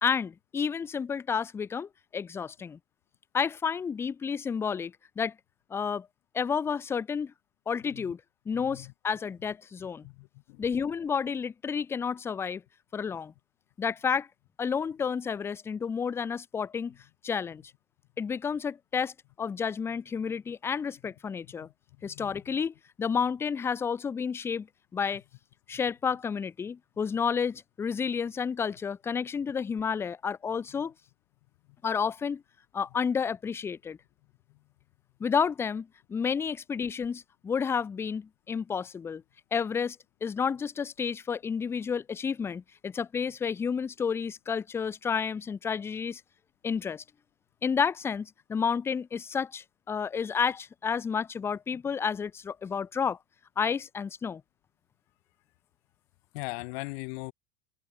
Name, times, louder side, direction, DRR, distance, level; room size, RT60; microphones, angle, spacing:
voice 1, 0.0-2.8 3.3-5.3 5.7-6.1 6.3-7.3 7.7-8.2 8.5-10.1 10.6-12.6 12.9-13.3 13.8-14.3 14.6-17.0 17.2-17.6 18.2-21.7 22.0-24.7 24.9-25.2 25.7-30.9 31.8-32.4 32.7-34.0 35.2-39.2 39.5-46.2 46.6-47.0 47.6-53.2 53.6-54.4, left 6 dB, 5° left, 0.4 m, -31 dB
voice 2, 8.5-8.9 10.0-10.6 21.6-21.7 22.0-22.3 56.3-57.3, left 28 dB, 50° left, 2.4 m, -39 dB
supercardioid pair, 160°, 39 cm